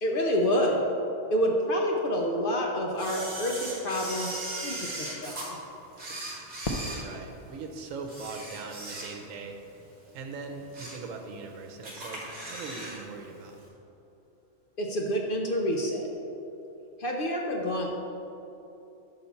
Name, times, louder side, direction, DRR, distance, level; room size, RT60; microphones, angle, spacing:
voice 1, 0.0-0.8 1.3-5.3 14.8-16.0 17.0-17.9, equal, 55° left, 0 dB, 0.7 m, -28 dB
Camera, 3.0-5.5 5.9-7.6 8.0-9.4 9.8-9.9 10.5-11.1 11.4-11.5 11.8-13.0 13.2-13.3, right 1 dB, 40° right, 1.5 m, -38 dB
Fireworks, 6.6-9.5, left 2 dB, 75° left, 0.3 m, -39 dB
voice 2, 6.8-9.6 10.1-13.6, right 4 dB, 80° right, 4 dB, 1.1 m, -41 dB
5.9 x 4.1 x 5.6 m, 3.0 s
omnidirectional pair, 1.3 m